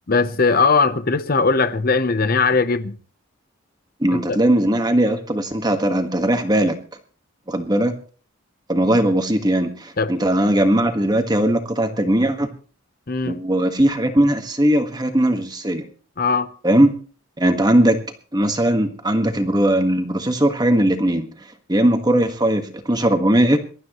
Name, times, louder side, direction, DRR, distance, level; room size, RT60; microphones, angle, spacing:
voice 1, 0.1-2.9 4.1-4.4 10.0-10.1 13.1-13.4 16.2-16.5, left 4 dB, 45° left, 0.8 m, -19 dB
voice 2, 4.0-6.8 7.5-7.9 8.7-12.5 13.2-15.8 16.6-16.9 17.4-18.0 18.3-21.3 21.7-23.6, right 1 dB, 20° right, 1.5 m, -19 dB
23.0 x 12.5 x 3.1 m
head